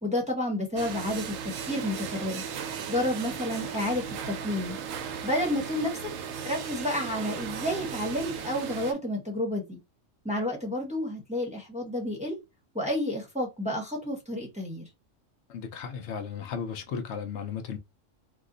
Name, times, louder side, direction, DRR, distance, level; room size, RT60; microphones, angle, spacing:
voice 1, 0.0-2.4 2.9-4.8 5.2-6.1 6.4-9.8 10.2-12.4 12.7-14.9, left 1 dB, 5° right, 0.8 m, -30 dB
sound 1, 0.8-8.9, right 7 dB, 85° right, 1.0 m, -36 dB
voice 2, 15.5-17.8, left 6 dB, 65° left, 0.9 m, -35 dB
2.8 x 2.1 x 3.7 m
omnidirectional pair, 1.3 m